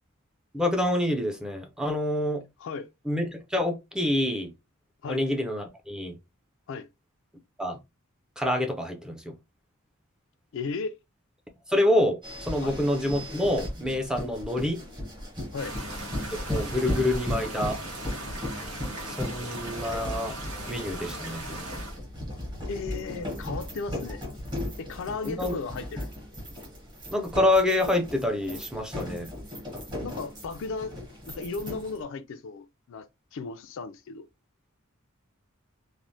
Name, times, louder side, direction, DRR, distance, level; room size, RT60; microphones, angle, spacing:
voice 1, 0.5-2.4 3.1-4.5 5.1-6.2 7.6-7.8 8.4-9.3 11.7-14.8 16.5-17.8 19.0-20.4 20.7-21.5 25.2-25.6 27.1-29.3, left 1 dB, 5° right, 0.4 m, -27 dB
voice 2, 10.5-10.9 12.6-12.8 15.5-15.8 22.7-24.2 24.8-26.1 30.0-30.9 31.3-34.3, left 4 dB, 60° left, 0.3 m, -35 dB
sound 1, 12.2-32.0, left 1 dB, 20° right, 1.0 m, -37 dB
sound 2, 15.6-22.0, right 1 dB, 85° right, 1.0 m, -38 dB
3.1 x 2.1 x 2.6 m
head